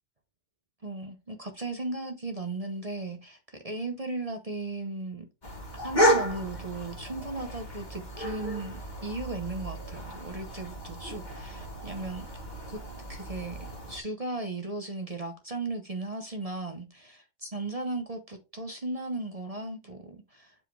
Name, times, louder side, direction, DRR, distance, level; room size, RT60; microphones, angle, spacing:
voice 1, 0.8-5.3 5.7-12.3 12.7-12.8 13.1-20.5, right 2 dB, 30° right, 0.7 m, -36 dB
sound 1, 5.4-14.0, equal, 30° left, 1.5 m, -32 dB
7.4 x 4.9 x 3.2 m
omnidirectional pair, 1.6 m